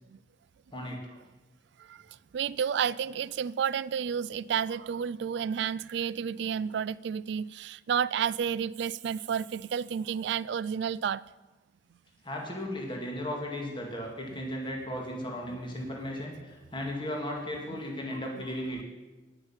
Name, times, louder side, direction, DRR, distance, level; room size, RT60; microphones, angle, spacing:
voice 1, 2.3-11.2 14.3-14.4 15.5-15.6, right 7 dB, 65° right, 0.3 m, -31 dB
voice 2, 12.2-18.8, left 1 dB, 30° left, 2.1 m, -36 dB
10.5 x 8.9 x 7.2 m
head